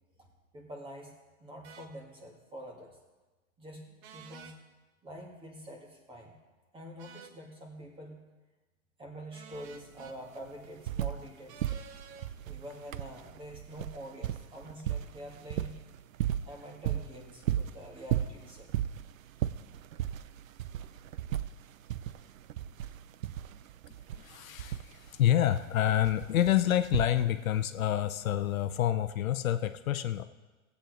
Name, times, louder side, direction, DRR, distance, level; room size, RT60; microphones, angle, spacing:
voice 1, 0.5-1.1 1.4-3.0 3.6-4.6 5.0-6.4 6.7-8.2 9.0-11.7 12.5-15.8 16.4-18.7 24.7-24.8, equal, 10° right, 1 dB, 1.8 m, -46 dB
sound 1, 1.6-1.9 4.0-4.6 7.0-7.4 9.3-10.2 11.5-12.3, right 7 dB, 40° right, 0.9 m, -51 dB
sound 2, 9.5-9.6 9.9-11.3 11.6-27.6 28.6-28.7, right 11 dB, 70° right, 0.6 m, -36 dB
voice 2, 24.1-30.2, left 11 dB, 75° left, 10 dB, 0.8 m, -28 dB
15.5 x 8.5 x 3.9 m, 1.2 s
hypercardioid pair, 135°, 41 cm